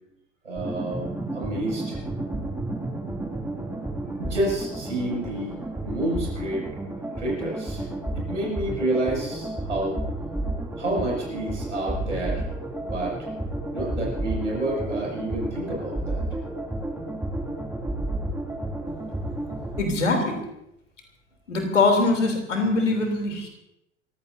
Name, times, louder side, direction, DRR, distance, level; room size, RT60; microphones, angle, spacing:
voice 1, 0.4-2.0 4.2-6.7 7.2-7.9 8.1-10.0 10.8-12.4 12.8-13.1 13.7-16.2, right 1 dB, 90° right, -3 dB, 6.9 m, -29 dB
sound 1, 0.6-19.8, right 1 dB, 5° right, 2.8 m, -31 dB
voice 2, 19.8-20.4 21.5-23.5, left 3 dB, 85° left, 3 dB, 3.5 m, -22 dB
26.5 x 16.0 x 2.8 m, 0.85 s
figure-of-eight pair, 75°, 36 cm